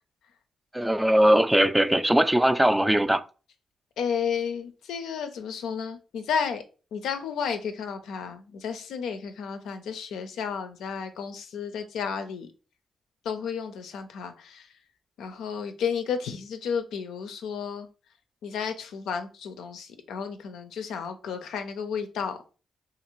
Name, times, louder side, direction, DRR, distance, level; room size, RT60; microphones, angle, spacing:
voice 1, 0.7-3.2, right 1 dB, 10° right, 0.3 m, -20 dB
voice 2, 4.0-6.6 6.9-12.5 13.2-14.7 15.2-17.9 18.4-22.4, left 6 dB, 80° left, 0.4 m, -32 dB
2.5 x 2.5 x 3.0 m
hypercardioid pair, 45°, 0 cm